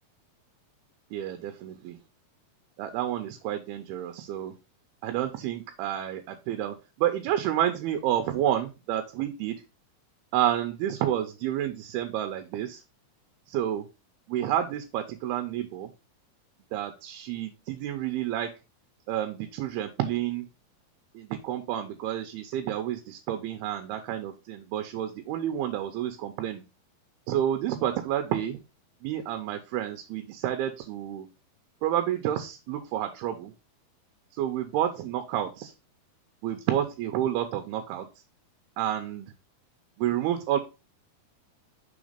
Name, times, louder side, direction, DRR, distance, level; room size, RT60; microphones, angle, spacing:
voice 1, 1.1-2.0 2.8-4.5 5.0-9.6 10.3-12.8 13.5-13.9 14.3-15.9 16.7-18.5 19.1-20.5 21.1-26.6 27.3-28.6 29.0-31.3 31.8-33.5 34.4-35.7 36.4-38.1 38.8-39.3 40.0-40.6, right 11 dB, 85° right, 6 dB, 2.6 m, -30 dB
5.9 x 4.0 x 5.0 m, 0.29 s
omnidirectional pair, 4.5 m